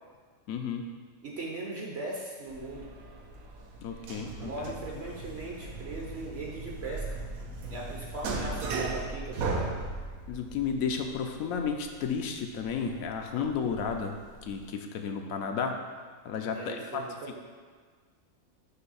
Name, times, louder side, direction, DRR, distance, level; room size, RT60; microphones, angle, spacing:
voice 1, 0.5-0.9 3.8-4.5 10.3-14.1 14.4-15.8 16.2-17.1, left 6 dB, 80° left, 4 dB, 1.0 m, -32 dB
voice 2, 1.2-2.9 4.4-7.2 7.7-9.7 16.5-17.4, right 2 dB, 55° right, -2 dB, 0.9 m, -39 dB
sound 1, 2.5-14.7, right 3 dB, 90° right, 1.2 m, -38 dB
6.0 x 3.2 x 5.5 m, 1.5 s
omnidirectional pair, 1.4 m